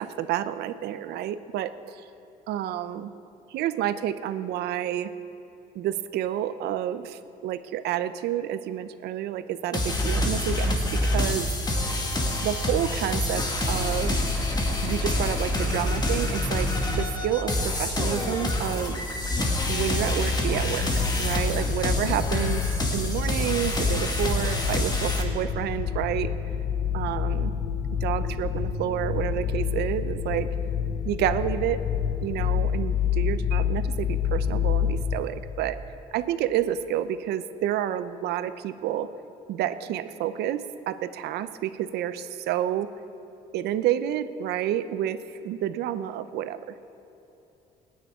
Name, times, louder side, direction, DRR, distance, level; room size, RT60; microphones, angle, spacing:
voice 1, 0.0-2.0 2.5-3.1 3.5-5.1 5.7-11.5 12.4-14.2 14.8-16.7 17.0-19.0 19.7-26.3 26.9-27.5 28.0-30.5 31.0-31.8 32.2-35.8 36.1-39.1 39.5-42.9 43.5-45.2 45.4-46.6, right 11 dB, 80° right, 12 dB, 0.7 m, -29 dB
sound 1, 9.7-25.2, left 1 dB, 25° left, 2.0 m, -27 dB
sound 2, 19.3-35.2, left 8 dB, 75° left, 1.1 m, -28 dB
28.0 x 9.6 x 3.7 m, 3.0 s
cardioid pair, 110°, 17 cm